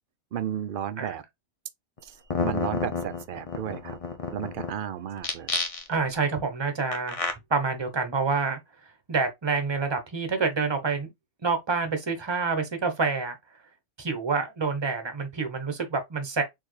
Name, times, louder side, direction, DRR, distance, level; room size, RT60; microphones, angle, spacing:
voice 1, 0.3-1.2 2.0-2.1 2.4-4.0 4.3-5.5, right 9 dB, 60° right, 0.6 m, -33 dB
sound 1, 2.0-2.1 2.3-4.7 5.2-6.1 6.9-7.3, left 4 dB, 35° left, 0.7 m, -30 dB
voice 2, 5.9-7.2 7.5-8.6 9.1-11.1 11.4-13.3 14.0-16.4, right 4 dB, 25° right, 0.9 m, -27 dB
4.4 x 3.5 x 3.2 m
omnidirectional pair, 1.2 m